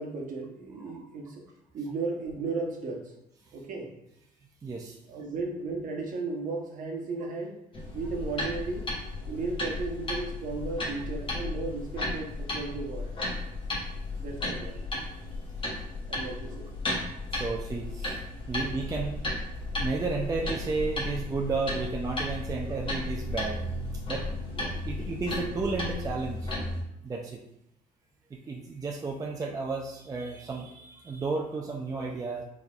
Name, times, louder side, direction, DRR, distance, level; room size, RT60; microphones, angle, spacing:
voice 1, 0.0-1.4 1.7-3.1 3.5-3.9 5.1-7.6 7.9-8.9 9.3-13.1 14.2-15.1 16.1-16.7 24.5-24.7, right 3 dB, 50° right, 1 dB, 0.9 m, -35 dB
voice 2, 4.6-5.0 17.3-18.2 18.5-19.2 19.8-23.6 24.1-24.2 24.8-26.5 27.0-27.4 28.3-32.4, right 4 dB, 20° right, 0 dB, 0.4 m, -33 dB
sound 1, 7.7-26.8, left 2 dB, 30° left, 1.1 m, -34 dB
4.2 x 3.4 x 2.4 m, 0.80 s
cardioid pair, 110°, 17 cm